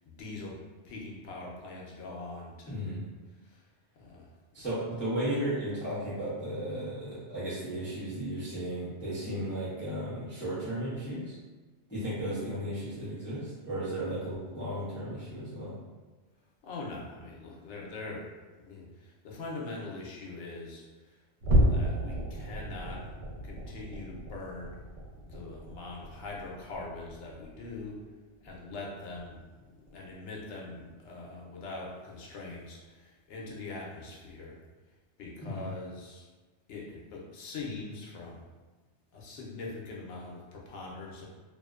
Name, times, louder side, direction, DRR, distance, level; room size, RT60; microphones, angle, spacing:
voice 1, 0.2-0.6 0.8-2.9 3.4-3.7 4.0-4.3 16.6-18.3 18.6-21.1 21.5-23.1 23.4-24.7 25.2-28.0 28.4-29.4 29.9-34.6 35.2-36.2 36.7-38.4 39.1-41.3, left 3 dB, 75° left, -2 dB, 0.9 m, -42 dB
voice 2, 2.7-3.0 4.5-11.4 11.9-15.7 35.4-35.7, right 1 dB, 15° left, -10 dB, 0.5 m, -35 dB
sound 1, 21.4-28.1 28.4-28.7 29.1-29.3 29.8-30.0, equal, 90° right, 0.9 m, -32 dB
2.5 x 2.1 x 2.3 m, 1.3 s
omnidirectional pair, 1.2 m